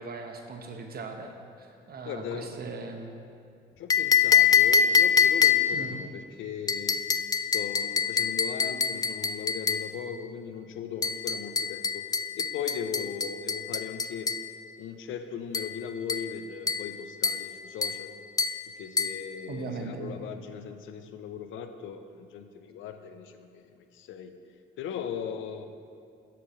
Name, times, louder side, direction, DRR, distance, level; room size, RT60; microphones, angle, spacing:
voice 1, 0.0-3.1 5.7-6.0 19.5-20.2, right 4 dB, 50° right, 4 dB, 1.0 m, -39 dB
voice 2, 2.1-2.5 3.8-7.0 7.4-12.0 12.3-14.3 14.8-18.2 18.7-24.3 24.8-25.7, left 7 dB, 85° left, 8 dB, 0.6 m, -38 dB
sound 1, 3.9-5.9 6.7-9.9 11.0-14.5 15.5-15.8 16.1-16.3 16.7-16.9 17.2-17.5 17.8-18.0 18.4-18.6 19.0-19.2, left 6 dB, 20° left, 0.3 m, -25 dB
10.0 x 7.9 x 3.1 m, 2.4 s
cardioid pair, 90°, 20 cm